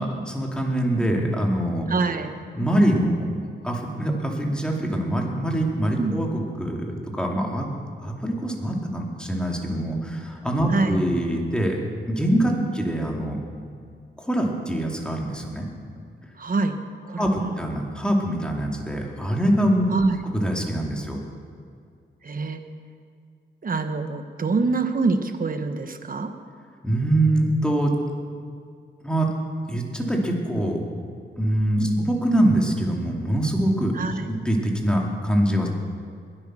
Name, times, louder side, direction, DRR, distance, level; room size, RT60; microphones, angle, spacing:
voice 1, 0.0-1.9 2.6-3.3 3.6-7.7 8.0-11.8 12.1-13.4 14.2-15.7 17.2-19.9 20.2-21.2 26.8-27.9 29.0-29.3 29.7-30.8 31.4-34.0 34.3-35.7, right 1 dB, 5° left, 0 dB, 2.6 m, -24 dB
voice 2, 1.9-2.4 6.0-6.2 10.7-11.0 12.6-12.7 16.4-16.8 17.0-17.5 19.9-20.2 22.2-22.6 23.6-26.3 31.8-32.0 33.9-34.3, right 3 dB, 45° right, 7 dB, 1.3 m, -25 dB
21.5 x 8.7 x 6.2 m, 2.3 s
wide cardioid pair, 95°, 20 cm